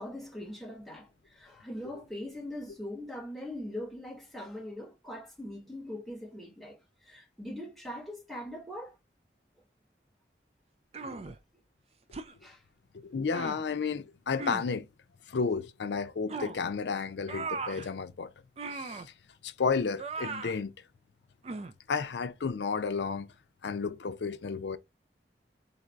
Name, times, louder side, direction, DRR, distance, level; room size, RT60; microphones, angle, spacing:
voice 1, 0.0-9.0 12.4-12.6, left 1 dB, ahead, 1.1 m, -41 dB
sound 1, 10.9-11.4 12.1-12.3 13.3-13.6 14.4-14.7 16.3-16.6 17.3-17.9 18.6-19.1 20.0-20.6 21.4-21.7, right 4 dB, 35° right, 0.4 m, -38 dB
voice 2, 12.9-14.9 15.3-18.3 18.7-19.1 19.4-20.7 21.9-23.3 23.6-24.8, left 5 dB, 80° left, 0.5 m, -32 dB
4.0 x 2.6 x 4.5 m
head